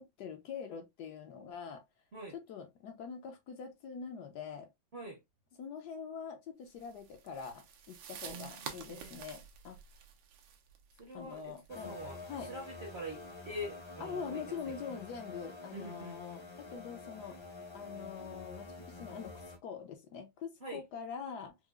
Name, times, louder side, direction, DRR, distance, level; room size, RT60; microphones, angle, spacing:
voice 1, 0.0-1.8 2.3-4.7 5.6-9.8 11.1-12.0 12.3-12.5 14.0-17.4 17.7-21.6, left 6 dB, 70° left, 1.1 m, -44 dB
sound 1, 6.8-11.7, right 7 dB, 85° right, 1.4 m, -49 dB
voice 2, 8.3-9.1 11.0-14.4 15.7-16.2 20.6-20.8, equal, 50° right, 0.8 m, -45 dB
sound 2, 11.7-19.6, left 3 dB, 25° left, 0.5 m, -48 dB
4.7 x 2.3 x 2.3 m
omnidirectional pair, 2.0 m